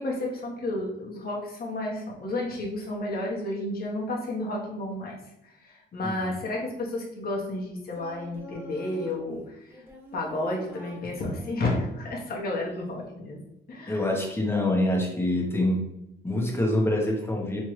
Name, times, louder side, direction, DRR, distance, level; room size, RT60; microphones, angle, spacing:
voice 1, 0.0-5.2 5.4-9.8 10.1-13.4 13.7-14.1, left 1 dB, 50° left, -2 dB, 1.2 m, -32 dB
voice 2, 6.0-6.4 13.9-15.8 16.2-17.6, left 1 dB, 10° left, -1 dB, 1.1 m, -25 dB
Singing, 7.9-9.2 9.7-11.7 12.5-13.1, equal, 10° right, 0.9 m, -45 dB
3.4 x 3.2 x 3.0 m, 0.85 s
cardioid pair, 90°, 20 cm